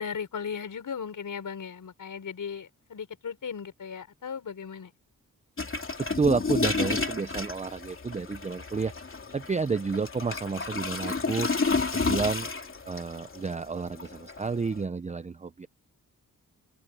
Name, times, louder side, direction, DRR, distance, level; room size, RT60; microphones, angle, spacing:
voice 1, 0.0-4.9, left 6 dB, 65° left, 5.2 m, -37 dB
sound 1, 5.6-14.8, left 4 dB, 35° left, 2.9 m, -31 dB
voice 2, 6.0-8.9 9.3-11.5 11.9-12.5 12.9-15.7, right 4 dB, 20° right, 0.6 m, -30 dB
wide cardioid pair, 105°, 34 cm